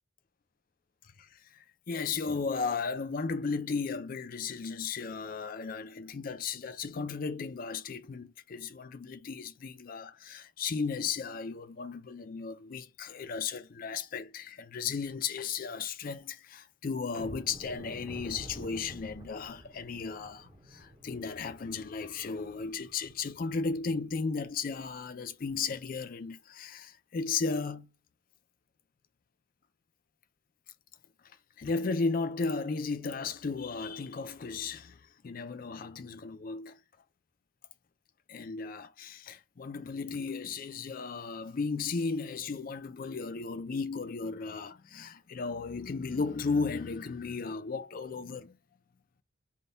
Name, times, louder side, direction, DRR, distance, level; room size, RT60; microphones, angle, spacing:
voice 1, 1.5-27.9 31.6-35.0 35.2-36.8 38.3-48.5, left 4 dB, 45° left, 0.4 m, -35 dB
sound 1, 17.1-23.9 24.2-24.4 24.8-25.0 25.4-25.6, equal, 15° right, 0.7 m, -49 dB
3.6 x 2.3 x 3.9 m
head